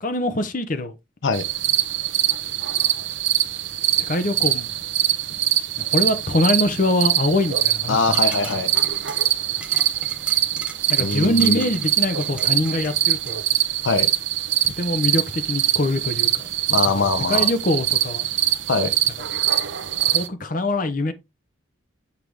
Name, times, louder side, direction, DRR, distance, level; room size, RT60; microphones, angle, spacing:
voice 1, 0.0-1.0 4.0-4.7 5.8-8.0 8.5-8.6 10.9-13.4 14.6-16.4 17.3-18.3 20.1-21.1, left 1 dB, 40° left, 0.8 m, -23 dB
sound 1, 1.3-20.3, right 12 dB, 65° right, 0.7 m, -23 dB
voice 2, 7.9-8.7 11.0-11.7 13.8-14.1 16.7-17.5 18.7-18.9, left 4 dB, 75° left, 0.7 m, -22 dB
sound 2, 8.1-13.4, right 2 dB, 5° right, 0.8 m, -41 dB
8.2 x 4.8 x 3.4 m
head